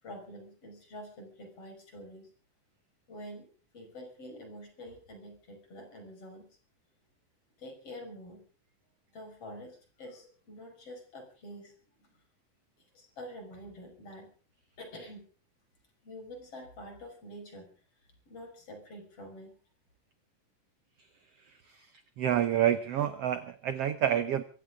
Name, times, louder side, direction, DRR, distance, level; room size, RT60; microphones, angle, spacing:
voice 1, 0.0-2.3 3.1-3.5 3.7-6.5 7.6-8.4 9.1-11.7 12.0-12.2 12.9-14.3 14.8-15.3 16.0-17.7 18.3-19.5, equal, 45° left, 3 dB, 6.3 m, -47 dB
voice 2, 21.5-21.9 22.2-24.4, right 10 dB, 70° right, 11 dB, 1.5 m, -28 dB
24.5 x 16.0 x 3.7 m, 0.39 s
omnidirectional pair, 3.9 m